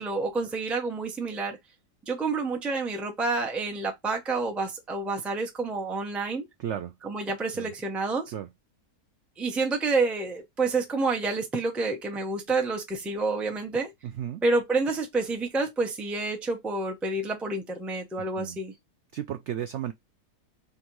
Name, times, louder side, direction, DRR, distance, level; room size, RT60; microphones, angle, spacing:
voice 1, 0.0-1.6 2.1-6.5 7.0-8.3 9.4-13.9 14.4-18.7, right 3 dB, ahead, 0.4 m, -28 dB
voice 2, 6.6-6.9 7.5-7.7 8.3-8.5 14.0-14.4 18.2-18.6 19.1-19.9, right 10 dB, 80° right, 0.6 m, -34 dB
3.5 x 2.6 x 4.4 m
omnidirectional pair, 1.7 m